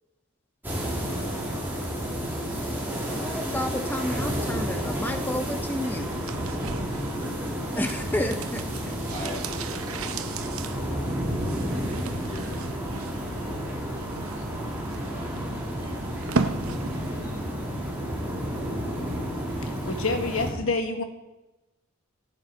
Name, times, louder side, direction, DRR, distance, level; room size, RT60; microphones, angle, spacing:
sound 1, 0.6-20.5, equal, 10° right, 2.5 m, -31 dB
voice 1, 3.0-6.1 7.8-9.0, left 1 dB, 10° left, 6 dB, 0.5 m, -31 dB
sound 2, 6.1-17.3 17.5-17.6, right 4 dB, 75° right, 0.7 m, -36 dB
voice 2, 6.9-7.5 9.1-9.7 11.4-16.3 17.1-17.7, left 2 dB, 35° left, -4 dB, 5.1 m, -45 dB
voice 3, 19.6-21.0, left 3 dB, 70° left, 6 dB, 1.3 m, -28 dB
15.5 x 8.9 x 4.2 m, 1.0 s
head